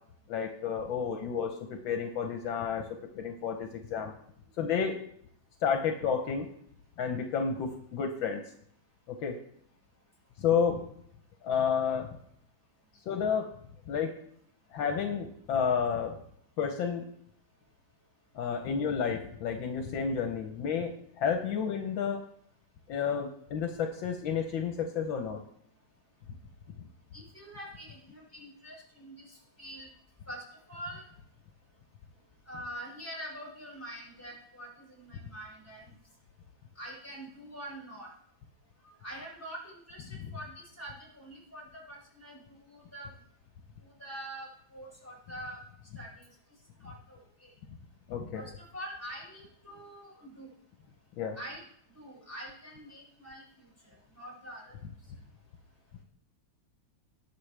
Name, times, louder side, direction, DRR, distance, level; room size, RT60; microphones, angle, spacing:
voice 1, 0.3-2.9 3.1-4.1 4.6-5.0 5.6-6.5 7.0-8.4 9.1-9.4 10.4-10.8 11.4-12.1 13.1-13.5 13.9-14.1 14.7-16.2 16.6-17.0 18.3-22.2 22.9-25.4 40.2-40.3 48.1-48.4 51.2-51.4, left 6 dB, 75° left, 5 dB, 1.6 m, -31 dB
voice 2, 27.1-29.9 30.3-31.0 32.5-35.9 36.7-38.1 38.8-43.1 43.8-45.6 45.9-46.3 46.8-47.5 48.3-50.5 51.3-51.6 51.9-53.7 54.1-54.7, right 1 dB, 5° left, -4 dB, 5.0 m, -45 dB
18.5 x 6.5 x 3.3 m, 0.68 s
omnidirectional pair, 2.2 m